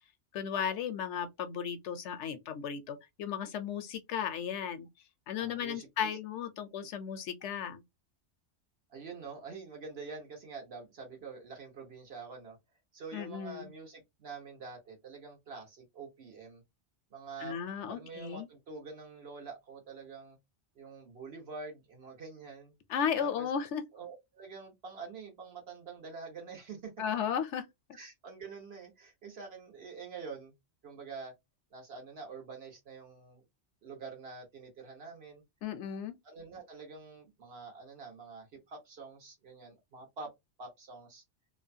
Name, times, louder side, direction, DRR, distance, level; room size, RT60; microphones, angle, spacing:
voice 1, 0.3-4.9 5.3-7.8 13.1-13.7 17.4-18.5 22.9-23.8 27.0-27.6 35.6-36.1, left 8 dB, 80° left, 0.9 m, -35 dB
voice 2, 5.4-6.1 8.9-12.6 12.9-16.6 17.1-17.6 17.9-20.4 20.7-22.7 23.2-23.5 23.9-26.9 27.9-30.5 30.8-31.3 31.7-33.4 33.8-35.4 36.2-40.3 40.6-41.2, right 4 dB, 60° right, 1.3 m, -46 dB
3.0 x 2.2 x 2.6 m
omnidirectional pair, 1.2 m